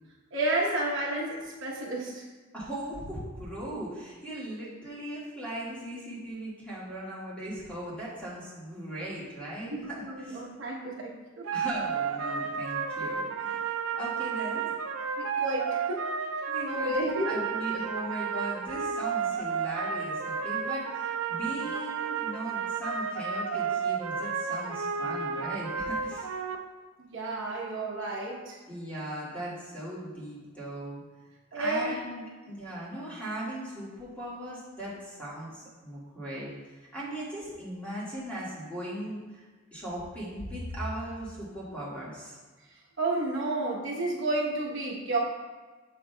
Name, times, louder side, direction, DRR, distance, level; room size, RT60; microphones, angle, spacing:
voice 1, 0.3-2.3 9.7-11.5 15.2-16.0 16.6-17.4 27.0-28.6 31.5-32.0 42.7-45.2, right 2 dB, 60° right, -3 dB, 1.0 m, -31 dB
voice 2, 2.5-10.4 11.5-13.6 13.9-14.7 16.5-16.9 17.2-26.3 28.7-31.0 31.5-36.5 36.8-42.4, right 1 dB, 5° left, -8 dB, 1.7 m, -38 dB
sound 1, 11.4-26.6, right 6 dB, 85° right, 0.5 m, -32 dB
7.2 x 6.2 x 2.2 m, 1.4 s
head